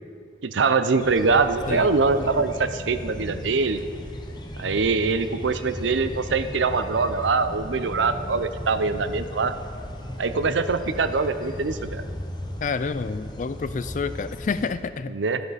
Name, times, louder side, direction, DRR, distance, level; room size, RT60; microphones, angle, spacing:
voice 1, 0.4-3.8 4.6-9.5 10.2-12.0 15.1-15.4, right 4 dB, 80° right, 11 dB, 0.6 m, -23 dB
sound 1, 1.0-14.7, left 1 dB, 25° left, 0.8 m, -36 dB
voice 2, 2.2-2.5 12.6-15.1, left 4 dB, 40° left, 14 dB, 0.3 m, -29 dB
12.0 x 10.5 x 4.1 m, 2.2 s
head